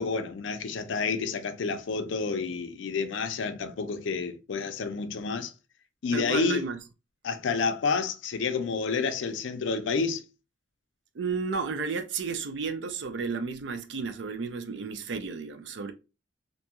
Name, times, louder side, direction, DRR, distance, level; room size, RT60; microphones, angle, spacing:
voice 1, 0.0-5.5 6.0-6.7 7.2-10.2, left 4 dB, 80° left, 0.5 m, -29 dB
voice 2, 6.1-6.8 11.1-15.9, right 4 dB, 70° right, 0.4 m, -32 dB
2.6 x 2.2 x 2.8 m
head